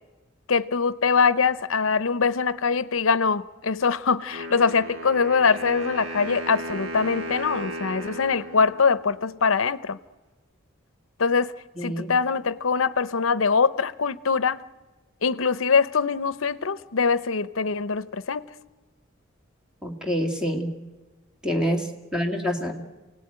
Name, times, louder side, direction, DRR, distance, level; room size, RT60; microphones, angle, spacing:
voice 1, 0.5-10.0 11.2-14.6 15.2-18.5, left 5 dB, 80° left, 0.7 m, -23 dB
Wind instrument woodwind instrument, 4.3-9.3, right 1 dB, 75° right, 3.2 m, -36 dB
voice 2, 11.8-12.1 19.8-20.7 21.4-21.9 22.1-22.7, equal, 5° right, 2.3 m, -26 dB
28.5 x 18.0 x 8.9 m
head